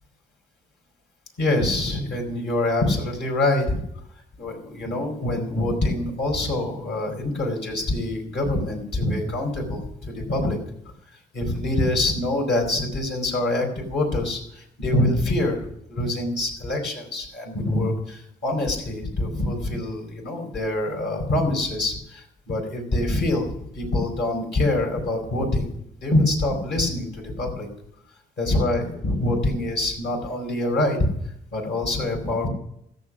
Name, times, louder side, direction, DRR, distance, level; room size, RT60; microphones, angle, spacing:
voice 1, 1.4-3.8 4.4-10.6 11.3-23.5 23.7-25.7 26.0-27.7 28.4-31.0 31.5-32.5, left 1 dB, 60° left, 1 dB, 4.6 m, -25 dB
15.0 x 7.2 x 6.3 m, 0.74 s
cardioid pair, 90°, 20 cm